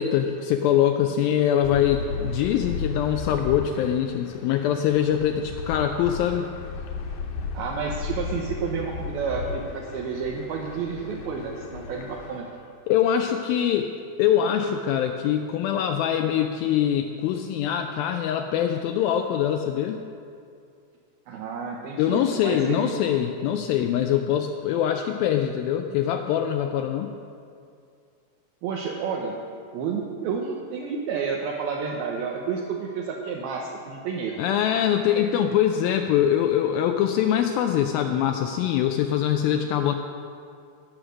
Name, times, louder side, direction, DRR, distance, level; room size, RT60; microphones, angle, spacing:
voice 1, 0.0-6.5 12.9-13.9 14.2-20.0 22.0-27.1 34.4-39.9, left 10 dB, 90° left, 5 dB, 2.0 m, -23 dB
sound 1, 1.6-12.4, left 4 dB, 70° left, 2.5 m, -35 dB
voice 2, 7.5-12.5 21.3-22.8 28.6-29.3 29.7-34.4, right 5 dB, 75° right, -1 dB, 2.6 m, -30 dB
17.5 x 6.5 x 6.2 m, 2.4 s
omnidirectional pair, 4.8 m